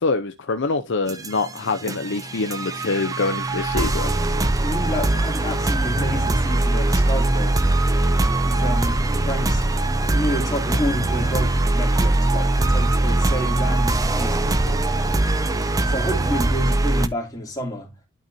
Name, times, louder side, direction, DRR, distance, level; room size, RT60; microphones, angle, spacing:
voice 1, 0.0-4.1, left 3 dB, 55° left, 0.6 m, -25 dB
sound 1, 1.1-17.1, right 2 dB, 15° right, 0.5 m, -21 dB
voice 2, 4.6-7.8 8.5-9.6 10.0-14.9 15.8-17.9, left 1 dB, 15° left, 2.9 m, -29 dB
11.5 x 4.4 x 2.7 m
head